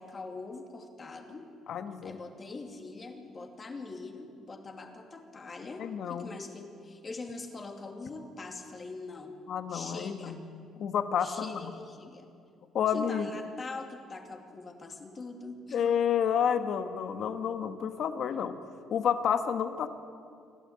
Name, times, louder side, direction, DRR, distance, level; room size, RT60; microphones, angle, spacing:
voice 1, 0.0-1.5 2.0-9.4 9.7-10.4 11.2-12.3 12.9-15.8, left 3 dB, 30° left, 4 dB, 2.7 m, -43 dB
voice 2, 1.7-2.1 5.8-6.3 9.5-10.4 10.8-11.7 12.7-13.3 15.7-18.6 18.9-19.9, left 8 dB, 60° left, 9 dB, 1.5 m, -30 dB
27.5 x 12.0 x 8.7 m, 2.4 s
cardioid pair, 115°, 0 cm